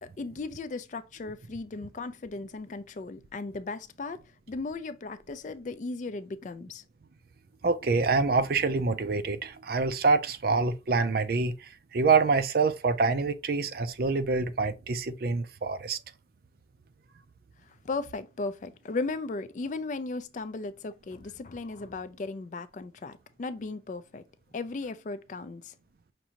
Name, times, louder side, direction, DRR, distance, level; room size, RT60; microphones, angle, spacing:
voice 1, 0.0-4.2 4.5-6.8 17.8-24.2 24.5-25.7, left 3 dB, 40° left, 0.4 m, -36 dB
voice 2, 7.6-16.0, right 4 dB, 55° right, 0.4 m, -26 dB
5.9 x 2.6 x 2.8 m
head